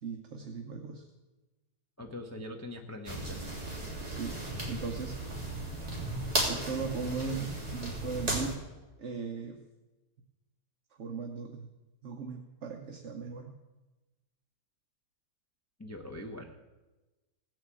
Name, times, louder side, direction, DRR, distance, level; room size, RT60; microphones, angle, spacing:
voice 1, 0.0-1.0 4.0-4.4 4.7-5.2 6.4-8.7 9.0-9.6 11.0-11.7 12.0-13.6, right 5 dB, 50° right, 3 dB, 1.2 m, -38 dB
voice 2, 2.0-3.5 15.8-16.6, left 1 dB, 10° left, 3 dB, 0.8 m, -42 dB
sound 1, 3.0-8.5, right 1 dB, 20° right, 3.3 m, -35 dB
17.5 x 6.4 x 8.3 m, 1.1 s
omnidirectional pair, 1.8 m